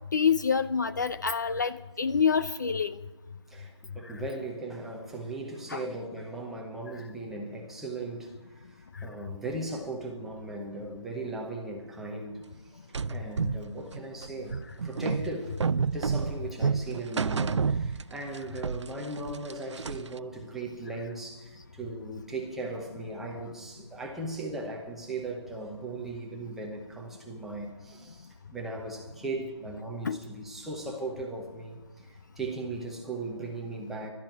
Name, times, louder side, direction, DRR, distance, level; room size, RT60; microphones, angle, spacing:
voice 1, 0.1-3.0 5.7-5.8 19.1-19.2 30.0-30.2, left 6 dB, 40° left, 13 dB, 0.5 m, -27 dB
voice 2, 3.5-15.6 15.8-34.1, right 2 dB, ahead, -1 dB, 0.9 m, -38 dB
sound 1, 12.9-18.4 18.6-20.2, right 5 dB, 85° right, 0.5 m, -30 dB
12.5 x 10.5 x 9.1 m, 1.1 s
figure-of-eight pair, 170°, 15 cm